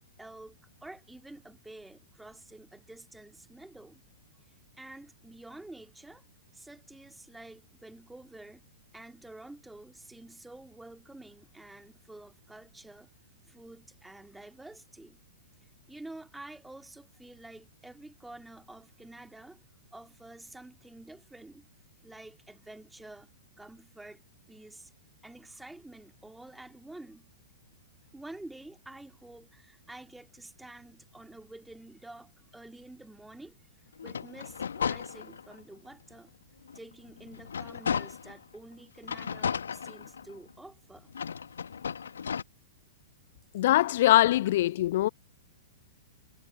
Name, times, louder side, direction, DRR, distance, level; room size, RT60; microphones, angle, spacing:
voice 1, 0.2-4.0 4.5-6.3 6.5-8.6 8.9-13.1 13.5-15.2 15.6-19.6 19.9-21.7 22.0-24.9 25.2-27.3 28.1-33.6 34.0-36.3 36.7-41.1, right 2 dB, 5° right, 2.6 m, -49 dB
sound 1, 34.0-35.6 36.1-36.2 36.7-38.4 39.0-40.5 41.1-42.4, left 7 dB, 65° left, 1.5 m, -35 dB
voice 2, 43.5-45.1, left 14 dB, 50° left, 0.4 m, -22 dB
figure-of-eight pair, 105°, 0 cm